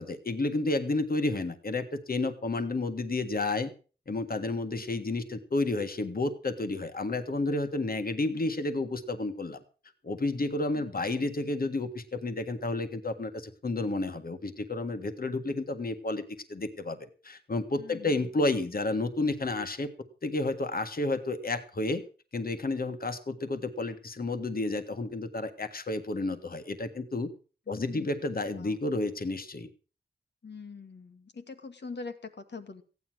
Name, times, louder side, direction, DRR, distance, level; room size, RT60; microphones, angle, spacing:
voice 1, 0.0-3.7 4.1-9.6 10.0-16.2 16.5-17.0 17.2-19.9 20.2-22.0 22.3-27.3 27.7-29.7, left 2 dB, 55° left, 8 dB, 1.7 m, -31 dB
voice 2, 17.8-18.3 27.7-28.1 28.6-28.8 30.4-32.8, left 4 dB, 70° left, 8 dB, 1.8 m, -43 dB
15.0 x 9.7 x 6.2 m, 0.38 s
cardioid pair, 55°, 18 cm